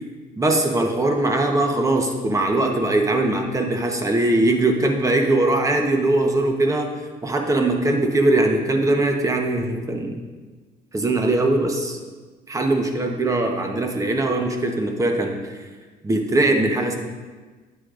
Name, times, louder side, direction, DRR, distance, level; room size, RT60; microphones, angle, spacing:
voice 1, 0.4-6.9 7.2-10.2 10.9-12.0 12.5-15.4 16.0-17.0, right 2 dB, 20° right, 3 dB, 1.0 m, -21 dB
9.7 x 8.2 x 2.6 m, 1.3 s
cardioid pair, 110°, 17 cm